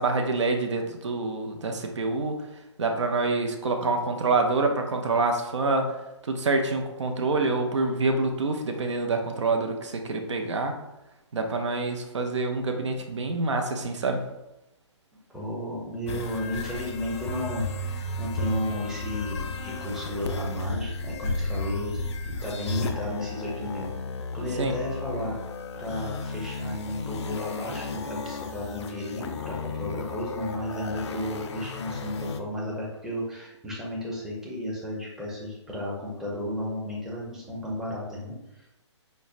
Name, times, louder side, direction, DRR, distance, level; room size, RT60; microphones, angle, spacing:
voice 1, 0.0-2.3 2.8-5.9 6.2-10.7 11.3-14.2 24.6-24.7, right 3 dB, 75° right, 4 dB, 0.6 m, -26 dB
voice 2, 15.3-23.9 24.3-25.4 25.7-38.7, left 1 dB, 5° right, -5 dB, 0.6 m, -33 dB
sound 1, 16.1-32.4, left 3 dB, 65° left, 0.4 m, -33 dB
5.3 x 2.1 x 2.5 m, 0.94 s
hypercardioid pair, 140°, 15 cm